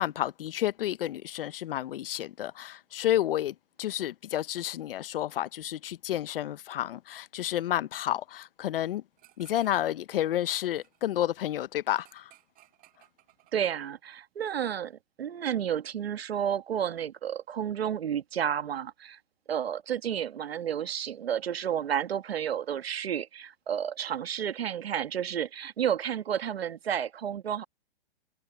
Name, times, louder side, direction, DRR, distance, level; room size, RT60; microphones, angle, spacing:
voice 1, 0.0-9.0 9.4-12.3, left 12 dB, 65° left, 0.8 m, -30 dB
sound 1, 9.2-9.9 10.2-14.0, right 18 dB, 30° right, 7.0 m, -61 dB
voice 2, 13.5-19.2 19.5-27.6, right 9 dB, 90° right, 1.5 m, -31 dB
hypercardioid pair, 145°, 30 cm